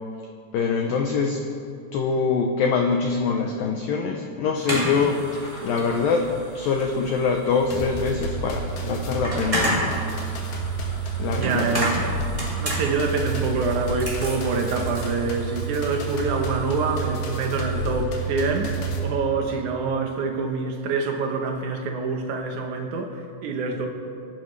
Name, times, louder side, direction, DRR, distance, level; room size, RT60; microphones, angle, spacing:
voice 1, 0.5-1.4 1.9-5.2 5.6-6.3 6.6-10.0 11.2-12.1, left 5 dB, 80° left, 3 dB, 2.0 m, -24 dB
sound 1, 4.6-18.0, equal, 10° right, 2.5 m, -33 dB
sound 2, 5.0-15.3, equal, 30° left, 2.2 m, -47 dB
sound 3, 7.7-19.0, right 4 dB, 60° left, 3.4 m, -29 dB
voice 2, 11.3-12.0 12.6-23.9, right 4 dB, 75° right, 2 dB, 1.7 m, -26 dB
26.0 x 12.0 x 3.3 m, 2.4 s
omnidirectional pair, 5.2 m